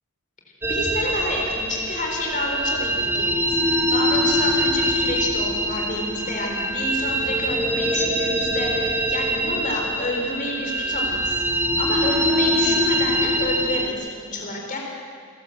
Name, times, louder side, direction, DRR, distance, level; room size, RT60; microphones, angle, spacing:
sound 1, 0.6-13.9, equal, 10° right, 1.9 m, -23 dB
voice 1, 0.7-14.8, left 1 dB, 35° left, 0 dB, 4.2 m, -29 dB
29.5 x 12.5 x 7.9 m, 2.2 s
head